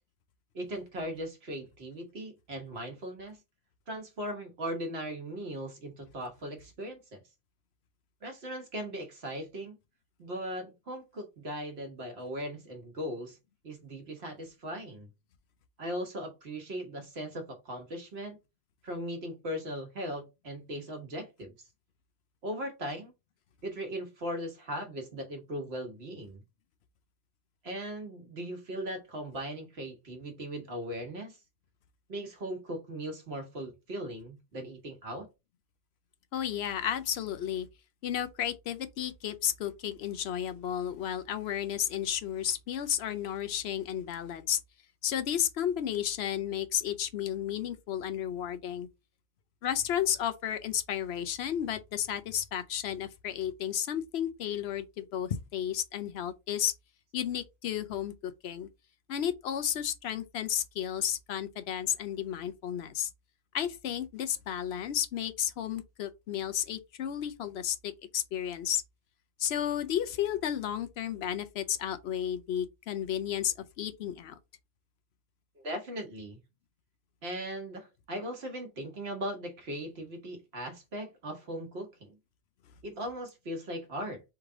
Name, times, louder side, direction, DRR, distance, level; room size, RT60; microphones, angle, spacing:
voice 1, 0.5-3.4 3.9-7.2 8.2-9.8 10.2-13.4 13.6-15.1 15.8-18.4 18.8-21.5 22.4-23.1 23.6-26.4 27.6-31.4 32.1-35.3 75.6-76.4 77.2-82.2 82.8-84.2, equal, 70° right, 1.4 m, -38 dB
voice 2, 36.3-37.7 38.0-44.6 45.0-48.9 49.6-56.7 57.1-58.7 59.1-63.1 63.5-68.8 69.4-74.4, left 10 dB, 75° left, 0.8 m, -32 dB
3.4 x 3.2 x 3.7 m
omnidirectional pair, 1.1 m